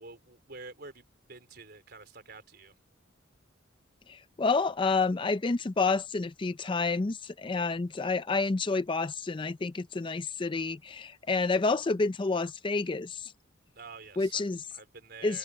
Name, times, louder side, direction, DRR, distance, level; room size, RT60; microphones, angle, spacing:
voice 1, 0.0-2.7 13.8-14.5 14.7-15.4, right 4 dB, 50° right, 3.9 m, -48 dB
voice 2, 4.1-13.3 14.2-14.6 15.2-15.4, left 3 dB, 25° left, 0.4 m, -29 dB
head